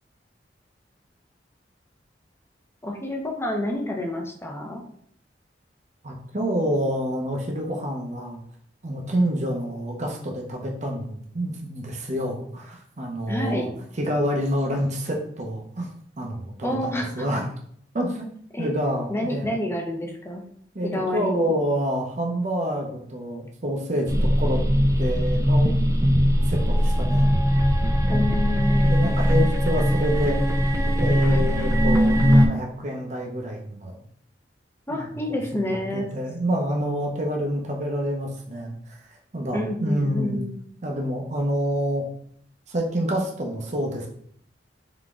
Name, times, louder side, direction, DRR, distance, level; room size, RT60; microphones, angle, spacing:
voice 1, 2.8-4.8 13.3-13.7 16.6-17.3 18.5-18.7 19.1-20.4 20.8-21.5 27.1-27.5 28.1-29.1 31.3-31.5 34.9-36.1 39.5-40.6, left 1 dB, 15° left, 1 dB, 0.7 m, -29 dB
voice 2, 6.0-8.4 8.8-13.7 14.0-15.9 16.2-17.5 17.9-18.3 18.6-19.5 20.7-24.6 25.0-25.7 26.4-27.3 28.0-28.3 28.8-30.4 31.0-34.0 34.9-40.4 40.8-42.0 42.7-44.1, equal, 40° right, 1 dB, 0.8 m, -28 dB
sound 1, 24.1-32.5, equal, 15° right, 0.4 m, -20 dB
3.9 x 3.5 x 3.6 m, 0.65 s
head